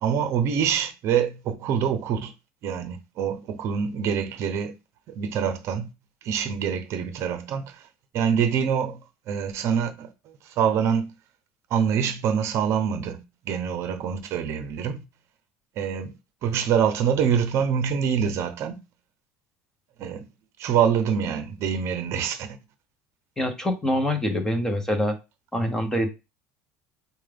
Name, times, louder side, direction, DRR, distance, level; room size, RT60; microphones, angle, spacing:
voice 1, 0.0-2.3 2.6-4.7 5.1-5.9 6.2-7.9 8.1-9.0 9.3-10.1 10.5-11.1 11.7-15.0 15.8-16.1 16.4-18.8 20.0-20.2 20.6-22.5, right 7 dB, 45° right, 0.7 m, -25 dB
voice 2, 23.4-25.1 25.5-26.1, left 1 dB, 10° left, 0.9 m, -25 dB
4.8 x 2.3 x 3.4 m
cardioid pair, 145°, 6 cm